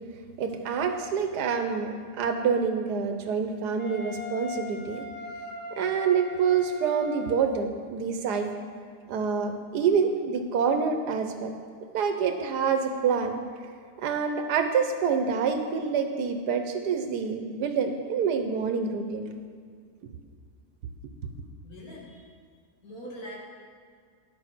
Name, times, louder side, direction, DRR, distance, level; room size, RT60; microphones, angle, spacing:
voice 1, 0.4-5.0 5.8-8.5 9.1-11.5 11.9-13.4 14.0-19.3, right 6 dB, 85° right, 6 dB, 1.4 m, -27 dB
Wind instrument woodwind instrument, 3.8-7.5, left 2 dB, 35° left, 0.8 m, -40 dB
voice 2, 21.6-22.3 22.8-23.4, equal, 65° left, -4 dB, 2.6 m, -42 dB
11.5 x 5.4 x 6.0 m, 2.1 s
omnidirectional pair, 1.7 m